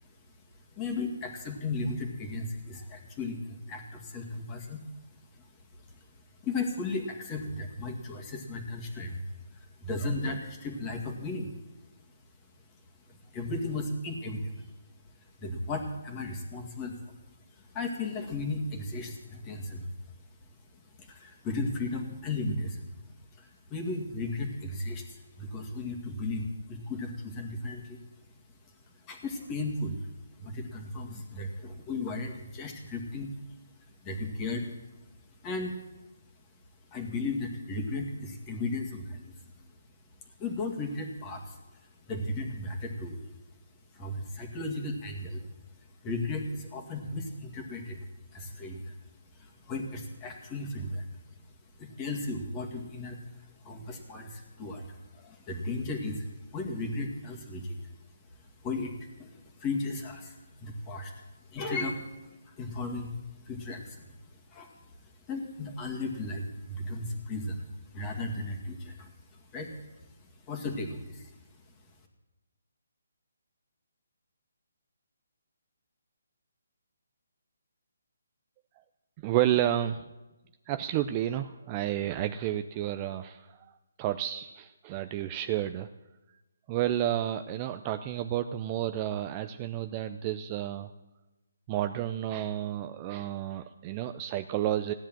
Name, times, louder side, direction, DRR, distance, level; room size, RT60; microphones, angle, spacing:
voice 1, 0.7-4.8 5.3-5.5 5.8-6.1 6.4-9.2 9.5-11.5 13.1-14.7 15.2-17.1 17.5-19.9 21.0-22.9 23.4-28.0 29.0-30.1 30.4-33.4 34.0-34.7 35.4-35.8 36.9-39.7 40.2-41.6 42.1-43.3 43.9-45.5 46.0-48.1 48.3-48.9 49.3-51.0 51.8-57.9 58.4-64.7 65.0-69.8 70.5-71.4, left 2 dB, 15° left, 3 dB, 2.0 m, -36 dB
voice 2, 79.2-80.0 80.7-83.6 84.0-85.9 86.7-90.9 91.7-94.9, right 12 dB, 20° right, 9 dB, 0.4 m, -31 dB
16.5 x 10.0 x 7.5 m, 1.1 s
hypercardioid pair, 165°, 0 cm